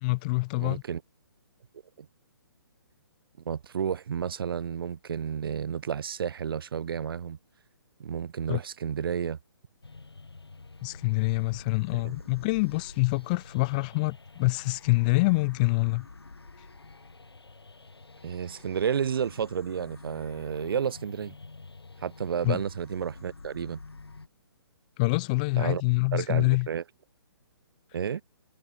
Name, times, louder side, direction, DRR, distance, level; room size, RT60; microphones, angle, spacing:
voice 1, 0.0-0.8 8.5-8.6 10.8-16.1 22.4-22.6 25.0-26.7, left 25 dB, 20° left, 0.3 m, -26 dB
voice 2, 0.6-1.0 2.0-2.1 3.5-7.4 8.0-9.4 11.9-12.2 18.2-21.3 22.0-23.8 25.6-25.8 26.1-26.8 27.9-28.2, right 7 dB, 65° right, 0.4 m, -31 dB
sound 1, 9.8-24.3, left 3 dB, 85° left, 2.5 m, -48 dB
figure-of-eight pair, 140°, 13 cm